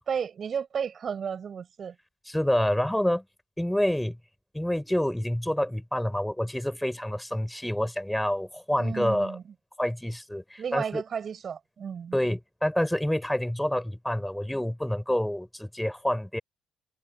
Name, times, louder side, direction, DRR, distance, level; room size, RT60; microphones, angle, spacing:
voice 1, 0.0-2.0 8.8-9.4 10.6-12.2, right 7 dB, 50° right, 5.9 m, -33 dB
voice 2, 2.3-3.2 3.6-4.2 4.5-9.4 9.8-11.0 12.1-16.4, left 1 dB, 5° left, 4.8 m, -27 dB
supercardioid pair, 60°, 0 cm